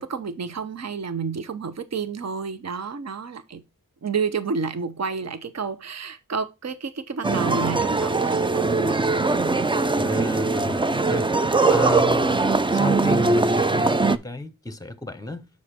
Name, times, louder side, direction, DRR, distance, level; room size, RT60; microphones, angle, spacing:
voice 1, 0.0-3.6 4.0-9.0 12.3-12.4, right 5 dB, 45° right, 0.8 m, -30 dB
sound 1, 7.2-14.2, right 3 dB, 15° right, 0.4 m, -21 dB
voice 2, 9.9-11.3 11.7-12.4 12.7-15.5, left 2 dB, 10° left, 0.9 m, -33 dB
7.0 x 4.9 x 4.4 m
wide cardioid pair, 80°, 36 cm